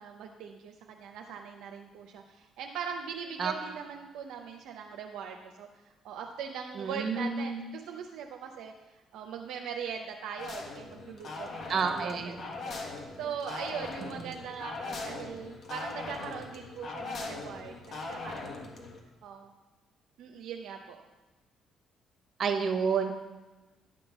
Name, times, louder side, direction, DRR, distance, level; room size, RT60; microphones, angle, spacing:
voice 1, 0.0-5.7 6.0-12.8 13.2-18.8 19.2-19.5 20.2-21.0, right 7 dB, 85° right, 2 dB, 0.6 m, -41 dB
voice 2, 6.8-7.7 11.7-12.4 22.4-23.1, right 5 dB, 55° right, 6 dB, 1.1 m, -29 dB
sound 1, 10.4-19.0, left 3 dB, 55° left, 1.4 m, -40 dB
11.0 x 3.8 x 7.1 m, 1.2 s
cardioid pair, 80°, 0 cm